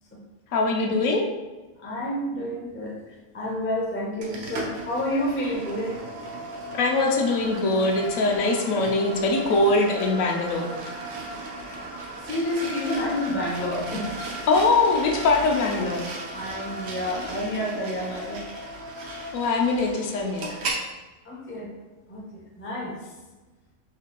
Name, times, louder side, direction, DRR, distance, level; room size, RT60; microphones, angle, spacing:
voice 1, 0.5-1.2 6.7-10.7 14.5-16.1 19.3-20.5, left 3 dB, 75° left, 1 dB, 1.0 m, -22 dB
voice 2, 1.8-3.0 3.3-6.0 11.1-11.2 11.7-11.9 12.3-14.2 16.3-18.4 21.2-21.7 22.1-22.2 22.6-22.9, left 1 dB, 20° left, -3 dB, 0.3 m, -29 dB
sound 1, 4.2-20.8, right 1 dB, 90° right, 1.2 m, -36 dB
3.8 x 2.5 x 2.8 m, 1.2 s
omnidirectional pair, 1.5 m